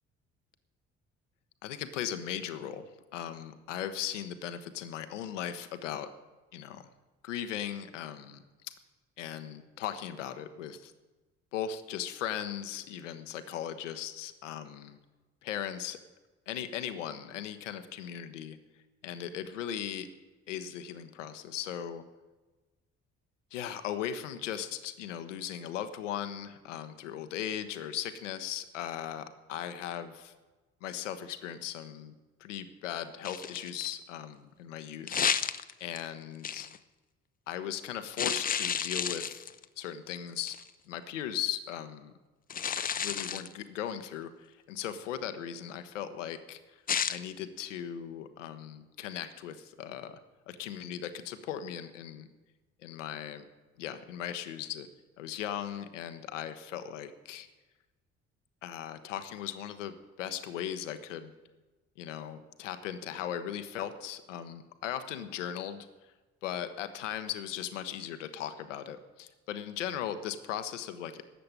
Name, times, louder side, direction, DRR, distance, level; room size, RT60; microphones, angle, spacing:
voice 1, 1.6-6.1 6.5-6.8 7.2-8.7 9.2-10.9 11.5-15.0 15.4-16.0 16.5-18.6 19.0-20.1 20.5-22.0 23.5-30.3 30.8-32.1 32.4-35.5 35.8-36.7 37.5-39.4 39.8-40.6 40.9-42.1 43.0-46.8 47.1-50.2 50.5-52.3 52.8-53.4 53.8-54.9 55.2-57.5 58.6-61.3 62.0-65.9 66.4-71.2, left 10 dB, 75° left, 10 dB, 0.9 m, -38 dB
sound 1, 33.2-33.9 35.1-36.0 36.4-36.8 38.2-39.6 40.5-40.7 42.5-43.5 46.9-47.2, left 7 dB, 25° left, 0.6 m, -31 dB
12.5 x 7.7 x 8.7 m, 1.2 s
figure-of-eight pair, 45°, 37 cm